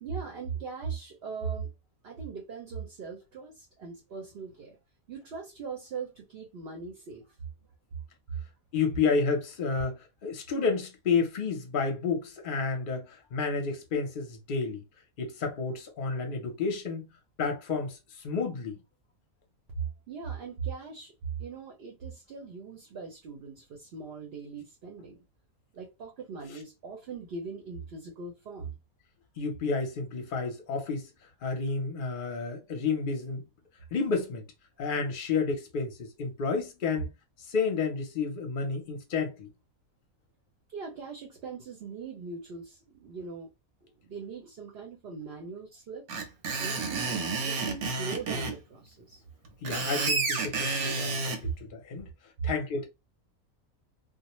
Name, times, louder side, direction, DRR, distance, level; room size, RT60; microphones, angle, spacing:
voice 1, 0.0-1.7 2.0-4.8 5.1-7.3 20.1-21.1 21.4-25.2 25.7-28.7 40.7-43.5 43.8-46.0 46.6-49.2, right 5 dB, 55° right, 0.7 m, -40 dB
voice 2, 8.7-14.8 15.2-17.0 17.4-18.0 18.2-18.8 29.4-31.1 31.4-33.5 33.9-34.4 34.8-37.1 37.5-39.5 49.6-52.1 52.4-52.9, left 4 dB, 45° left, 0.7 m, -30 dB
Screech, 46.1-48.6 49.5-51.4, right 4 dB, 85° right, 1.1 m, -30 dB
2.4 x 2.1 x 3.0 m
omnidirectional pair, 1.5 m